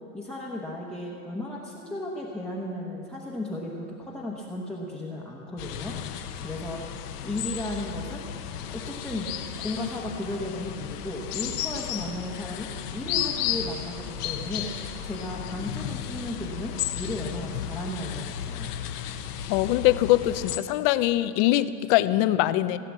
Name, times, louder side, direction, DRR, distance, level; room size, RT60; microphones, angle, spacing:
voice 1, 0.1-7.0 7.2-8.2 8.7-9.3 9.6-14.7 15.0-18.7, left 1 dB, ahead, -5 dB, 1.0 m, -35 dB
sound 1, 5.6-20.6, left 10 dB, 80° left, 1.1 m, -34 dB
voice 2, 19.5-22.8, left 15 dB, 40° left, 14 dB, 0.5 m, -22 dB
16.0 x 9.2 x 7.3 m, 2.7 s
supercardioid pair, 140°, 46 cm